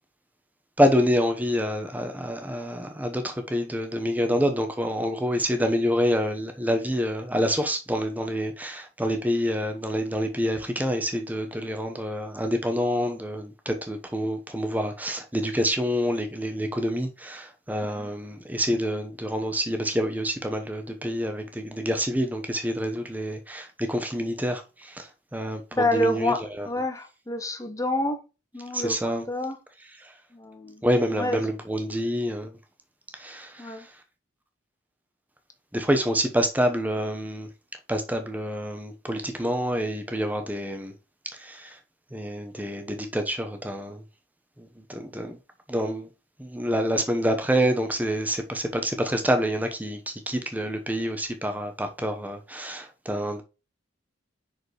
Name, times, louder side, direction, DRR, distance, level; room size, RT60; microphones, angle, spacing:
voice 1, 0.8-26.7 28.7-29.2 30.0-30.1 30.8-32.5 33.2-33.8 35.7-37.5 37.9-40.9 41.3-41.8 42.1-44.0 44.6-45.4 45.7-46.1 46.4-53.4, equal, 10° right, 0.9 m, -27 dB
voice 2, 25.7-28.2 28.5-29.6 30.3-30.8 31.1-31.4 33.6-33.9, left 1 dB, 15° left, 1.0 m, -28 dB
6.0 x 5.3 x 3.1 m
head